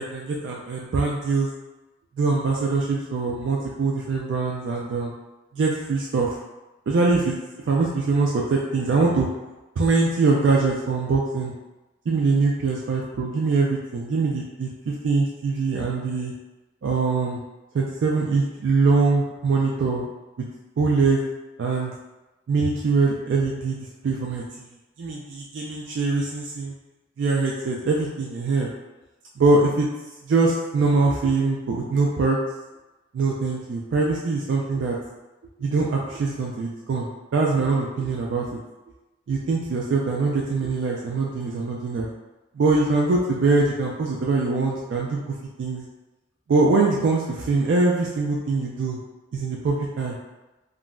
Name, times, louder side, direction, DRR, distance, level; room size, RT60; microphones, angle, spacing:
voice 1, 0.0-1.5 2.2-5.1 5.5-6.4 6.9-7.4 7.7-9.3 9.8-11.5 12.1-16.3 16.8-17.4 17.7-20.1 20.4-20.5 20.8-21.2 21.6-21.9 22.5-24.4 25.0-26.7 27.2-28.7 29.4-29.9 30.3-32.4 33.1-35.0 35.6-38.5 39.3-42.1 42.5-45.8 46.5-49.0 49.3-50.2, right 3 dB, 65° right, -2 dB, 0.3 m, -23 dB
3.6 x 2.0 x 2.2 m, 1.1 s
head